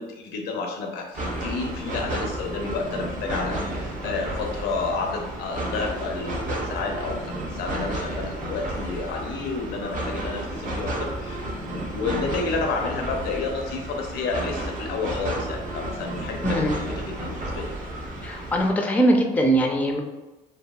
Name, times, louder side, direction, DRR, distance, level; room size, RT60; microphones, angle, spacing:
voice 1, 0.0-11.4 11.7-16.6 17.0-17.7, left 4 dB, 85° left, 2 dB, 0.6 m, -30 dB
sound 1, 1.1-18.7, right 1 dB, 50° right, 0.7 m, -32 dB
voice 2, 16.4-16.8 18.2-20.0, right 1 dB, 10° left, 1 dB, 0.4 m, -21 dB
2.7 x 2.6 x 2.2 m, 1.1 s
cardioid pair, 110°, 17 cm